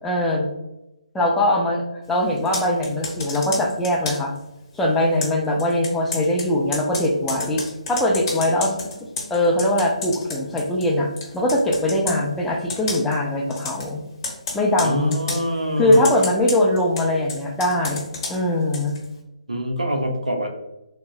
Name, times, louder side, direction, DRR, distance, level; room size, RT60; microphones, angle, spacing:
voice 1, 0.0-0.5 1.1-4.3 4.7-7.6 7.9-11.1 11.3-14.0 14.5-15.2 15.8-19.0, left 1 dB, 5° left, -2 dB, 0.4 m, -21 dB
Computer keyboard, 2.4-4.4 5.2-10.9 11.2-12.2 12.7-13.2 13.5-13.9 14.2-15.4 15.9-19.1, left 3 dB, 35° left, 0.8 m, -32 dB
voice 2, 14.8-16.0 19.5-20.5, equal, 85° right, 2 dB, 0.6 m, -24 dB
3.7 x 2.0 x 2.3 m, 0.93 s
figure-of-eight pair, 145°, 4 cm